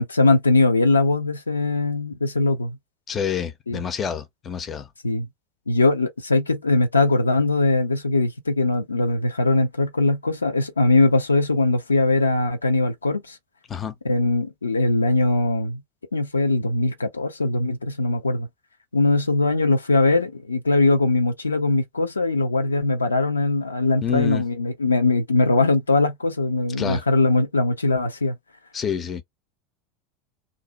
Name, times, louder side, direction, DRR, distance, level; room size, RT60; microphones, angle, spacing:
voice 1, 0.0-2.8 3.7-3.8 5.0-5.3 5.7-13.4 14.0-15.8 16.1-18.5 18.9-28.3, left 2 dB, 80° left, 0.4 m, -21 dB
voice 2, 3.1-4.9 13.7-13.9 24.0-24.4 26.8-27.0 28.7-29.2, left 7 dB, 25° left, 0.5 m, -27 dB
2.5 x 2.0 x 2.8 m
figure-of-eight pair, 80°, 0 cm